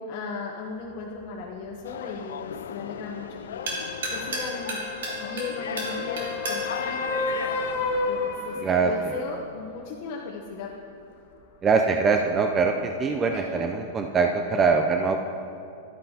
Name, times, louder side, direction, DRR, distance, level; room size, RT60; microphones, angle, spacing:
voice 1, 0.0-3.7 4.1-4.8 5.2-7.6 8.1-10.7 13.3-13.5, left 4 dB, 50° left, -2 dB, 0.8 m, -37 dB
Stirring Liquid, 0.6-8.2, right 2 dB, 85° right, 2.3 m, -37 dB
sound 1, 1.8-7.7, left 8 dB, 90° left, 0.3 m, -36 dB
sound 2, 3.5-9.2 13.3-13.4, left 3 dB, 65° left, 1.3 m, -32 dB
voice 2, 8.6-9.2 11.6-15.2, right 5 dB, 20° right, 4 dB, 0.4 m, -23 dB
12.0 x 8.9 x 2.8 m, 2.6 s
supercardioid pair, 140°, 0 cm